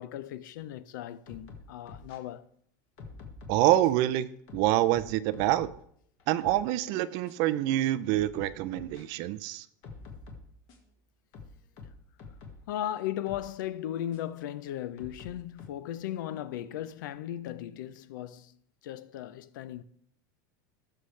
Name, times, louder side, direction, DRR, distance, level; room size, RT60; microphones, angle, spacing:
voice 1, 0.0-2.4 12.7-18.5 18.8-19.8, left 12 dB, 70° left, 0.6 m, -37 dB
sound 1, 1.3-2.2 3.0-4.0 4.5-5.8 6.2-6.6 7.3-7.4 8.1-9.0 9.8-10.9 11.3-12.7 13.3-13.5 14.1-14.2 15.0-15.6, left 4 dB, 40° left, 1.8 m, -47 dB
voice 2, 3.5-4.3 4.5-5.7 6.3-9.6, right 14 dB, 35° right, 0.5 m, -26 dB
18.0 x 6.5 x 3.3 m
supercardioid pair, 175°, 11 cm